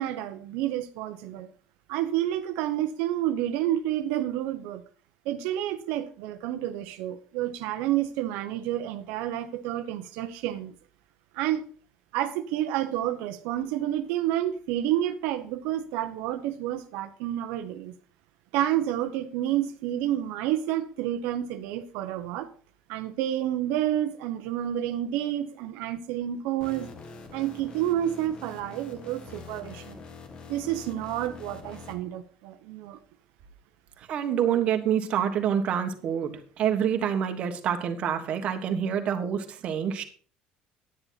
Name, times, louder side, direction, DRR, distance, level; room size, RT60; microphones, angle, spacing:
voice 1, 0.0-1.5 1.9-4.8 5.2-10.7 11.3-11.7 12.1-17.9 18.5-22.5 22.9-26.9 27.3-30.0 30.5-33.0, right 12 dB, 90° right, 8 dB, 0.8 m, -29 dB
sound 1, 26.6-32.0, left 4 dB, 30° left, 1.4 m, -45 dB
voice 2, 34.0-36.3 36.6-40.0, right 8 dB, 40° right, 6 dB, 1.4 m, -27 dB
9.9 x 9.7 x 4.1 m, 0.43 s
cardioid pair, 170°, 3 cm